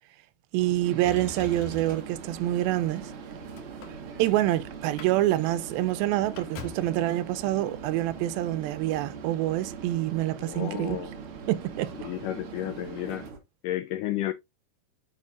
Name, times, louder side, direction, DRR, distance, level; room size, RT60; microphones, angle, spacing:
voice 1, 0.5-3.1 4.2-11.0 11.5-11.9, right 14 dB, 85° right, 2.4 m, -26 dB
sound 1, 0.6-13.4, right 4 dB, 50° right, 1.6 m, -44 dB
sound 2, 0.8-13.3, right 8 dB, 70° right, 1.7 m, -44 dB
Motor vehicle (road), 1.0-2.2 2.9-4.5 4.8-5.1 5.4-5.5 5.9-7.0 8.0-8.1, left 4 dB, 65° left, 2.7 m, -43 dB
voice 2, 10.4-11.1 12.0-13.3 13.6-14.3, left 13 dB, 80° left, 1.9 m, -32 dB
7.3 x 5.3 x 2.4 m
omnidirectional pair, 4.3 m